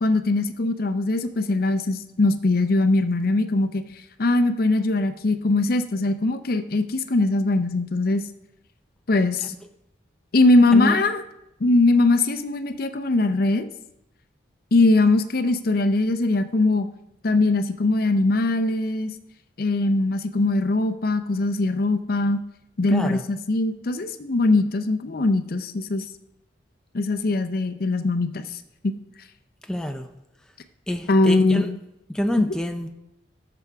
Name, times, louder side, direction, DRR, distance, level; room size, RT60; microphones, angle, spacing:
voice 1, 0.0-3.8 4.2-8.2 9.1-9.5 10.3-11.2 11.6-13.7 14.7-16.9 17.2-19.1 19.6-22.4 22.8-26.0 26.9-28.9 31.1-31.8 32.4-32.5, left 2 dB, 50° left, 10 dB, 0.6 m, -21 dB
voice 2, 22.9-23.2 29.7-30.1 30.9-31.7 32.1-32.9, equal, 5° left, 4 dB, 0.5 m, -26 dB
15.5 x 6.9 x 3.5 m, 0.89 s
head